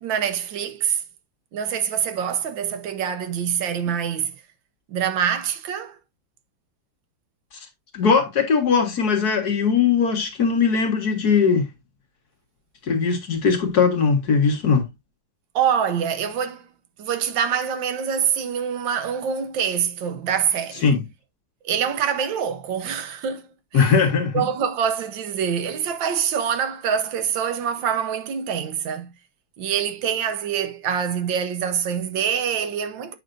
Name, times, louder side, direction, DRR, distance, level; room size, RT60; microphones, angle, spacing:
voice 1, 0.0-1.0 1.5-4.3 4.9-6.0 15.5-16.7 17.0-20.8 21.6-23.9 24.3-29.1 29.6-33.1, right 8 dB, 75° right, 1.5 m, -25 dB
voice 2, 7.9-11.7 12.9-14.9 20.8-21.0 23.7-24.5, left 5 dB, 55° left, 1.9 m, -19 dB
8.5 x 5.8 x 2.6 m
omnidirectional pair, 2.1 m